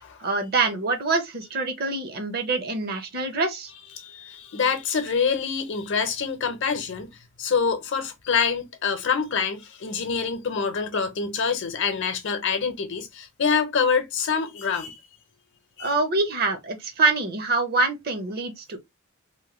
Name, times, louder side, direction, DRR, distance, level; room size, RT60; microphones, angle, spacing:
voice 1, 0.2-3.7 15.8-18.8, right 3 dB, 50° right, 0.6 m, -25 dB
voice 2, 4.0-7.1 7.4-15.0 15.8-16.0, left 6 dB, 60° left, 0.7 m, -26 dB
2.9 x 2.2 x 2.9 m
head